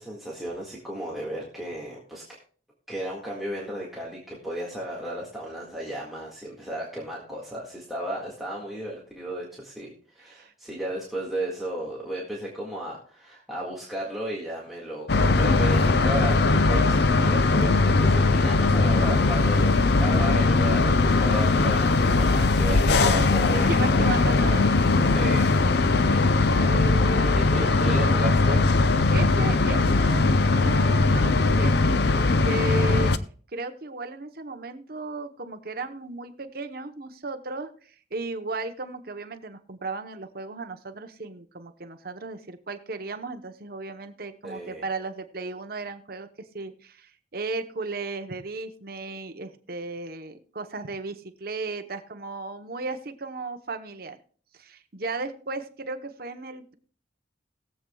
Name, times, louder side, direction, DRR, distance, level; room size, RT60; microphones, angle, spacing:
voice 1, 0.0-2.2 2.9-23.7 25.1-25.5 27.3-28.6 44.4-44.8, right 1 dB, ahead, -5 dB, 1.8 m, -34 dB
sound 1, 15.1-33.2, left 3 dB, 60° left, 0.5 m, -20 dB
voice 2, 23.5-24.7 25.9-27.7 29.1-31.7 32.1-33.1 33.5-37.7 38.1-46.3 46.5-54.2 54.6-56.7, right 3 dB, 55° right, 7 dB, 0.9 m, -35 dB
20.5 x 7.6 x 2.3 m, 0.44 s
head